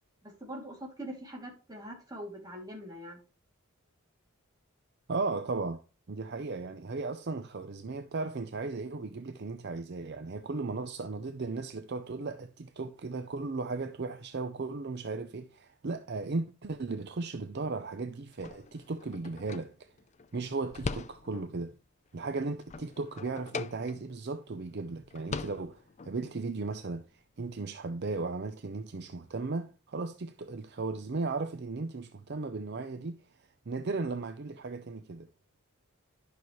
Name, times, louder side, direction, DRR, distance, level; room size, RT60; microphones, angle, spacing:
voice 1, 0.2-3.2, equal, 20° right, 2.4 m, -43 dB
voice 2, 5.1-5.8 6.1-19.9 20.3-21.7 22.1-33.2 33.7-35.3, right 3 dB, 50° right, 0.5 m, -36 dB
sound 1, 18.3-21.6 22.1-24.3 24.6-24.7 25.0-26.2, left 4 dB, 30° left, 0.4 m, -41 dB
11.5 x 6.1 x 3.1 m
head